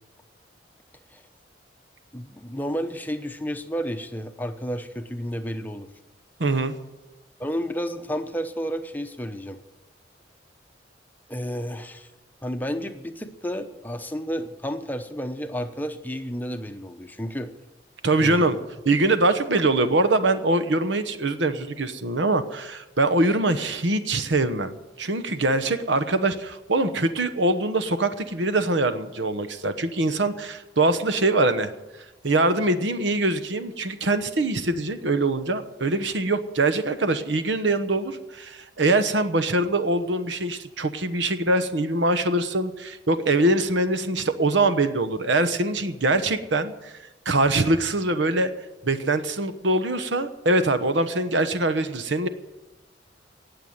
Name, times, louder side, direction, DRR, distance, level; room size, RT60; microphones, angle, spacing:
voice 1, 2.1-5.9 7.4-9.6 11.3-12.1 12.4-17.5 18.2-18.5, equal, 10° left, 7 dB, 0.8 m, -31 dB
voice 2, 6.4-6.7 18.0-18.6 18.8-31.7 32.2-46.9 47.2-48.5 48.8-52.3, right 2 dB, 70° right, 11 dB, 1.1 m, -23 dB
18.5 x 6.9 x 9.3 m, 1.1 s
head